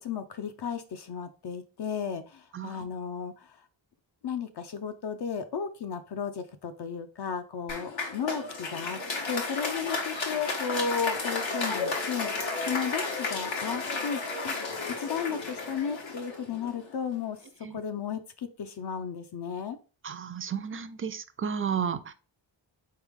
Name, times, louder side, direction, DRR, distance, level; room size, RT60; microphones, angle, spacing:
voice 1, 0.0-3.6 4.2-9.0 9.3-17.4 17.7-19.8, left 7 dB, 60° left, 7 dB, 0.6 m, -34 dB
voice 2, 2.5-2.9 17.6-17.8 20.0-22.1, right 7 dB, 30° right, 12 dB, 0.4 m, -33 dB
Applause, 7.7-17.0, left 3 dB, 85° left, 1.3 m, -33 dB
4.3 x 3.3 x 3.5 m, 0.34 s
wide cardioid pair, 115°, 45 cm